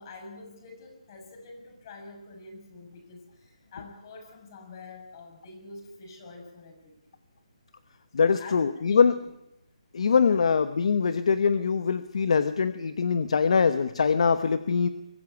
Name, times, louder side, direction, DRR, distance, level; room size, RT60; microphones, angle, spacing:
voice 1, 0.0-6.9 8.1-9.3 10.2-10.4, left 3 dB, 35° left, 3 dB, 6.7 m, -46 dB
voice 2, 8.1-9.2 9.9-14.9, left 5 dB, 60° left, 12 dB, 1.1 m, -23 dB
23.0 x 14.0 x 9.6 m, 0.84 s
hypercardioid pair, 160°, 4 cm